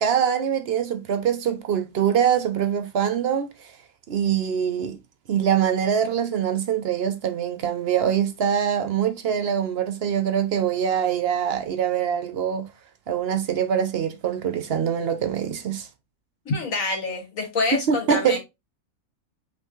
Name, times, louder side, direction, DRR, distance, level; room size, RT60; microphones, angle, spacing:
voice 1, 0.0-3.7 4.1-5.0 5.3-12.7 13.1-15.9 17.7-18.4, right 8 dB, 60° right, 0.7 m, -24 dB
voice 2, 16.5-18.4, left 3 dB, 75° left, 1.9 m, -26 dB
5.5 x 3.1 x 3.0 m
omnidirectional pair, 1.4 m